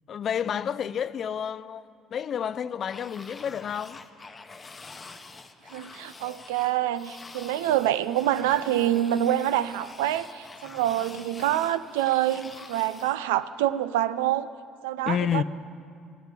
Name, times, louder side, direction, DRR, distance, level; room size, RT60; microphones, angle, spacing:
voice 1, 0.1-4.0 15.1-15.4, left 8 dB, 50° left, 0.4 m, -30 dB
zombies walking dead hoard, 2.9-13.2, left 3 dB, 30° left, 0.9 m, -46 dB
voice 2, 5.7-14.5 14.8-15.4, right 12 dB, 90° right, 0.4 m, -26 dB
12.5 x 8.2 x 9.7 m
supercardioid pair, 70°, 0 cm